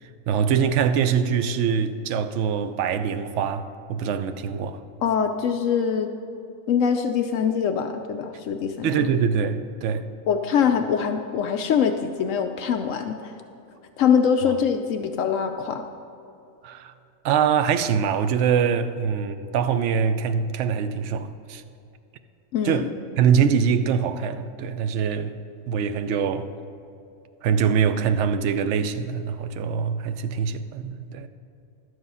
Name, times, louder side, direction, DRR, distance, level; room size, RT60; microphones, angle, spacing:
voice 1, 0.3-4.8 8.8-10.1 14.5-14.6 16.6-16.9 17.2-21.6 22.6-22.9 23.2-25.3 25.7-26.5 27.4-31.3, right 7 dB, 65° right, 10 dB, 0.8 m, -23 dB
voice 2, 5.0-6.1 6.7-8.9 10.3-13.3 14.0-15.8 22.5-22.8, left 7 dB, 70° left, 6 dB, 0.9 m, -23 dB
11.5 x 7.9 x 5.5 m, 2.6 s
omnidirectional pair, 1.5 m